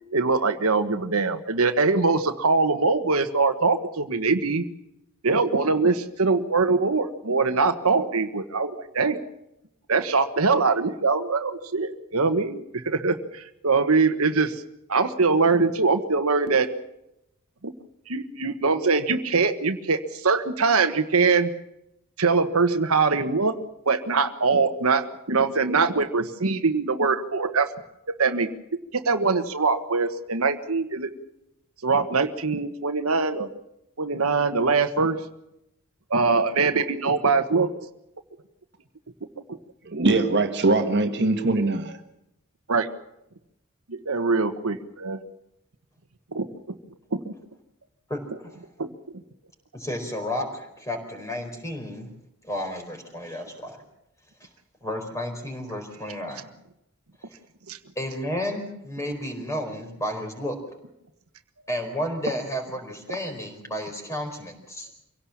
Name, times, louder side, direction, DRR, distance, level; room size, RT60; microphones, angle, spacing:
voice 1, 0.1-4.7 5.2-9.2 9.9-14.6 14.9-16.7 17.6-17.7 18.1-21.5 22.2-23.6 23.8-27.7 28.1-28.5 28.9-31.1 31.8-33.5 34.0-35.2 36.1-37.7 42.7-42.9 43.9-45.2 46.3-46.5 47.1-47.3 48.8-48.9 57.7-57.8, right 4 dB, 80° right, 1.3 m, -23 dB
voice 2, 39.9-42.0, right 2 dB, 50° right, 1.6 m, -22 dB
voice 3, 48.1-48.5 49.7-52.1 52.4-53.8 54.4-54.5 54.8-56.5 58.0-60.6 61.7-64.9, equal, 15° left, 4.6 m, -32 dB
25.0 x 17.5 x 7.3 m
head